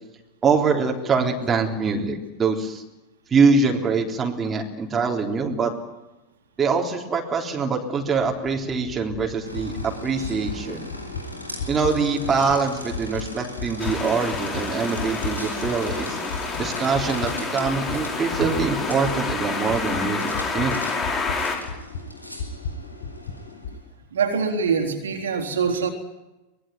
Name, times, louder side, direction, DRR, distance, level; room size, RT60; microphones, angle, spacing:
voice 1, 0.4-2.8 3.3-5.7 6.6-10.9 11.7-16.2 16.6-20.8, right 4 dB, 20° right, 1 dB, 3.7 m, -24 dB
sound 1, 8.2-16.0 16.3-23.8, left 4 dB, 55° left, 2.3 m, -36 dB
sound 2, 9.4-23.8, equal, 85° left, 4.4 m, -39 dB
sound 3, 13.8-21.6, left 4 dB, 25° left, 5.8 m, -29 dB
voice 2, 24.1-25.9, right 5 dB, 65° right, 3 dB, 3.8 m, -24 dB
24.0 x 20.5 x 9.2 m, 1.0 s
figure-of-eight pair, 90°, 0 cm